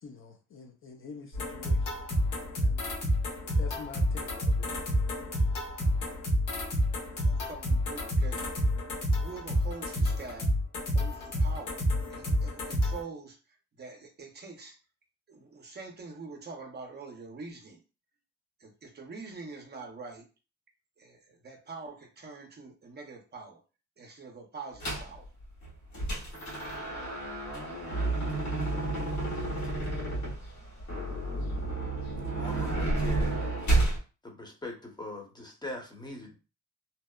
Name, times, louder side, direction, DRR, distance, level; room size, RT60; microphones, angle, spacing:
voice 1, 0.0-2.0 2.6-2.9 3.5-4.7, left 5 dB, 45° left, 0.5 m, -46 dB
sound 1, 1.3-13.0, equal, 90° left, 1.0 m, -29 dB
voice 2, 7.2-8.6 9.1-10.5 10.9-13.4 13.8-14.8 15.3-17.8 18.6-20.3 21.0-23.6 24.0-25.3, right 4 dB, 35° right, 0.5 m, -45 dB
sound 2, 24.8-25.1 25.6-34.0, right 2 dB, 70° left, 1.4 m, -30 dB
voice 3, 32.4-33.4 34.2-36.4, left 2 dB, 15° left, 0.8 m, -41 dB
2.7 x 2.0 x 2.2 m
cardioid pair, 90°, 30 cm